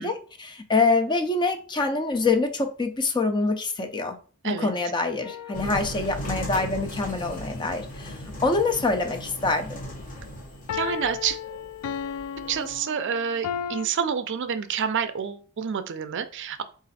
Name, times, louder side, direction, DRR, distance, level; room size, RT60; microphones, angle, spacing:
voice 1, 0.0-4.2 4.4-9.8, left 3 dB, 20° left, 0.4 m, -25 dB
sound 1, 5.2-6.3 10.7-13.9, left 8 dB, 90° left, 0.4 m, -34 dB
sound 2, 5.5-12.8, left 1 dB, 35° left, 0.9 m, -37 dB
voice 2, 10.7-11.4 12.5-16.6, right 7 dB, 55° right, 0.4 m, -28 dB
4.1 x 2.5 x 4.0 m
head